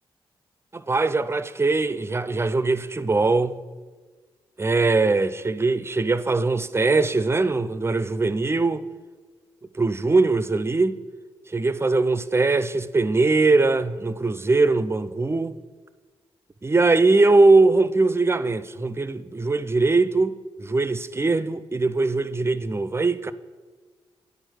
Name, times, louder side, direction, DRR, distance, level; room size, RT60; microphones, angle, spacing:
voice 1, 0.7-3.5 4.6-8.8 9.7-11.0 11.5-15.6 16.6-23.3, right 3 dB, 25° right, 0.5 m, -21 dB
9.7 x 4.4 x 4.9 m
supercardioid pair, 45°, 11 cm